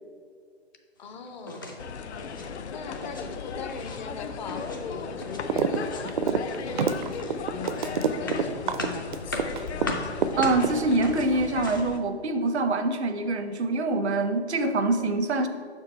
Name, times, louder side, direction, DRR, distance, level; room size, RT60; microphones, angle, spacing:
voice 1, 1.0-1.7 2.7-9.5, left 5 dB, 45° left, 5 dB, 0.7 m, -40 dB
sound 1, 1.4-1.8 2.1-2.5 2.8-3.3 3.5-4.0 4.5-5.5 5.7-6.2 6.5-12.0, left 1 dB, 20° left, 0.3 m, -38 dB
sound 2, 1.8-12.0, left 5 dB, 90° left, 0.5 m, -37 dB
sound 3, 5.5-5.8 6.0-9.9 10.2-11.1, right 6 dB, 50° right, 0.4 m, -26 dB
voice 2, 10.4-15.5, right 2 dB, 85° right, 7 dB, 0.7 m, -25 dB
6.6 x 4.6 x 4.4 m, 2.1 s
hypercardioid pair, 145°, 32 cm